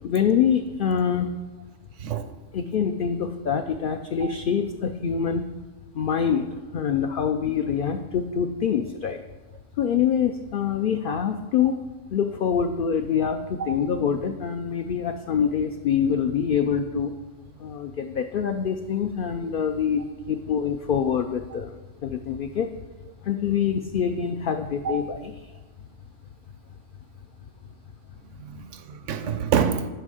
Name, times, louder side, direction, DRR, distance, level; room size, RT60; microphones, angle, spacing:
voice 1, 0.0-1.3 2.5-5.4 5.9-9.2 9.8-11.8 12.1-17.1 17.6-21.7 22.0-22.7 23.2-25.3, left 7 dB, 65° left, 0.5 m, -25 dB
voice 2, 28.4-29.9, right 7 dB, 70° right, 0.9 m, -27 dB
11.5 x 4.5 x 4.9 m
omnidirectional pair, 1.3 m